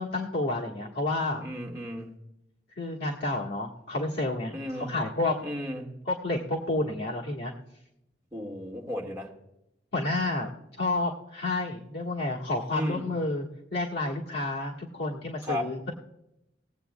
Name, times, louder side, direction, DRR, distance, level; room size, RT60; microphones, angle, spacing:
voice 1, 0.0-1.4 2.8-5.4 6.1-7.5 9.9-10.5 10.8-13.4 13.7-15.9, left 2 dB, 65° left, -4 dB, 1.4 m, -30 dB
voice 2, 1.4-2.1 4.5-4.9 5.4-5.9 8.3-9.3 12.7-13.0 15.4-15.6, left 1 dB, 15° right, -2 dB, 1.7 m, -34 dB
21.0 x 8.1 x 2.2 m, 0.85 s
head